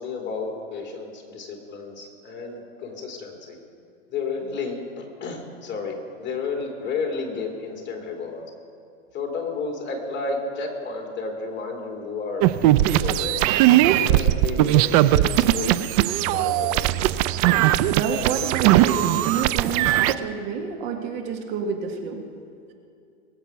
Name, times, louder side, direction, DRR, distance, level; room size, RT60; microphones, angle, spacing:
voice 1, 0.0-3.6 4.1-8.4 9.1-13.4 13.9-15.8 16.2-16.9, left 4 dB, 30° left, 1 dB, 2.9 m, -32 dB
sound 1, 12.4-20.1, right 14 dB, 30° right, 0.4 m, -19 dB
voice 2, 17.9-22.2, right 6 dB, 50° right, 3 dB, 1.9 m, -29 dB
21.5 x 8.0 x 6.0 m, 2.5 s
hypercardioid pair, 110°, 38 cm